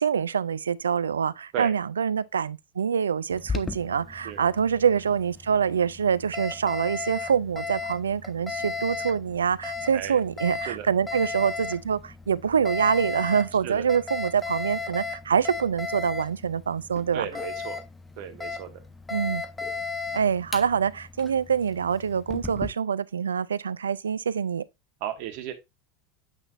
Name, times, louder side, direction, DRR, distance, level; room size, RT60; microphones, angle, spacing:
voice 1, 0.0-17.2 19.1-19.4 20.1-24.6, right 7 dB, 90° right, 0.4 m, -25 dB
Alarm, 3.3-22.7, left 4 dB, 15° left, 1.3 m, -36 dB
voice 2, 17.1-17.8 18.2-18.8 25.0-25.5, right 10 dB, 60° right, 1.4 m, -34 dB
8.1 x 5.8 x 2.6 m
hypercardioid pair, 85°, 0 cm